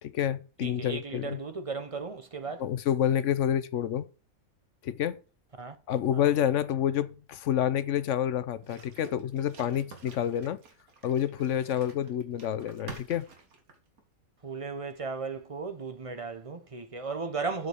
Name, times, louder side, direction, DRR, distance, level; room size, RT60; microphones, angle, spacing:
voice 1, 0.0-1.4 2.6-4.0 4.8-5.2 5.9-10.6 11.0-13.3, left 10 dB, 65° left, 0.9 m, -28 dB
voice 2, 0.6-2.6 5.6-5.8 6.1-6.3 14.4-17.7, right 4 dB, 35° right, 0.6 m, -36 dB
sound 1, 8.6-14.1, right 4 dB, 85° right, 2.0 m, -49 dB
7.9 x 5.0 x 6.3 m
omnidirectional pair, 1.5 m